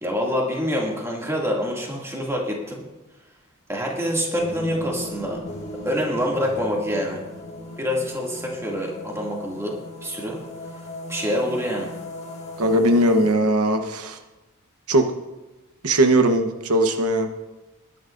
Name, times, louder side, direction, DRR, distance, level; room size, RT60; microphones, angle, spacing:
voice 1, 0.0-2.8 3.7-5.4 5.8-7.2 7.8-9.7 10.0-10.4 11.1-11.9, equal, 15° right, -2 dB, 2.3 m, -26 dB
sound 1, 4.3-13.3, left 1 dB, 30° left, 1.8 m, -37 dB
voice 2, 12.6-14.2 14.9-15.1 15.8-17.3, right 1 dB, 85° right, 6 dB, 1.0 m, -19 dB
20.5 x 10.0 x 2.6 m, 1.1 s
head